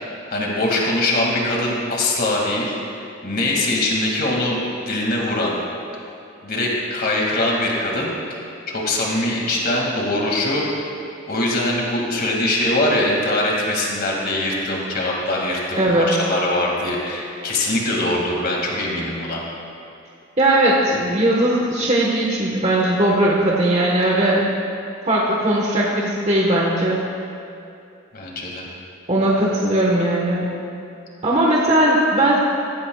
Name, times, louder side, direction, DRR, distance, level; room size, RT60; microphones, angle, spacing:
voice 1, 0.3-5.6 6.4-8.4 8.7-10.7 11.3-19.4 28.1-28.7, left 1 dB, 50° left, -2 dB, 2.3 m, -22 dB
voice 2, 15.8-16.1 20.4-24.5 25.0-27.0 29.1-30.5 31.2-32.4, right 1 dB, 35° right, -4 dB, 1.3 m, -18 dB
16.5 x 15.5 x 2.4 m, 2.6 s
head